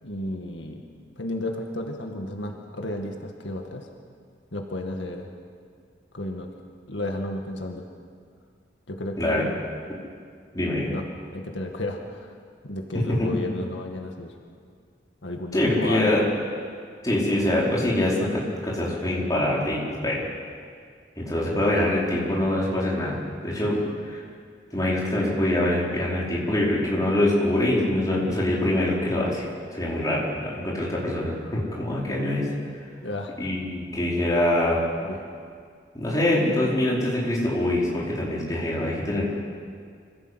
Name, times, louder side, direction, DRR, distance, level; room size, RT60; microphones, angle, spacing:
voice 1, 0.0-0.8 1.2-3.9 4.5-5.3 6.1-6.5 6.9-7.8 8.9-9.6 10.9-11.0 11.3-12.4 12.6-14.3 15.2-16.1 33.0-33.3 35.0-35.2, left 1 dB, 85° left, 2 dB, 2.1 m, -32 dB
voice 2, 10.5-10.9 13.1-13.3 15.5-16.3 17.0-20.2 21.2-23.2 23.4-23.8 24.1-24.2 24.7-29.4 29.7-32.5 33.4-34.8 35.9-39.4, left 1 dB, 20° left, -5 dB, 4.7 m, -24 dB
26.0 x 16.5 x 8.2 m, 2.1 s
head